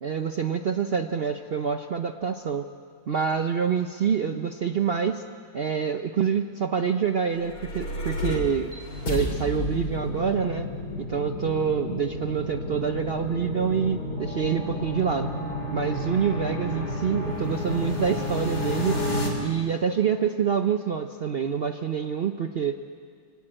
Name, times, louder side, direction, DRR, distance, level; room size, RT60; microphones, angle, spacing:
voice 1, 0.0-2.7 3.1-5.2 5.5-8.7 9.1-10.7 11.0-15.3 15.7-18.9 19.4-22.9, right 7 dB, 60° right, 7 dB, 0.6 m, -26 dB
sound 1, 7.2-19.3, left 1 dB, 65° left, 3.9 m, -31 dB
24.0 x 17.0 x 8.8 m, 2.1 s
omnidirectional pair, 1.9 m